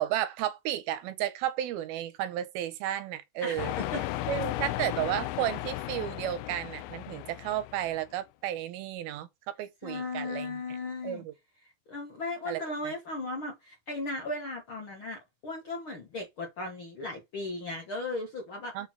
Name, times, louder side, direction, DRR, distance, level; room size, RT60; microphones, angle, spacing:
voice 1, 0.0-3.7 4.3-10.6 11.0-11.3 12.5-12.9 18.7-18.9, right 12 dB, 80° right, 2.7 m, -33 dB
voice 2, 3.4-4.0 9.8-11.2 11.9-18.7, left 2 dB, 60° left, 1.4 m, -36 dB
sound 1, 3.6-8.1, left 16 dB, 80° left, 2.4 m, -35 dB
6.7 x 3.9 x 6.0 m
omnidirectional pair, 4.4 m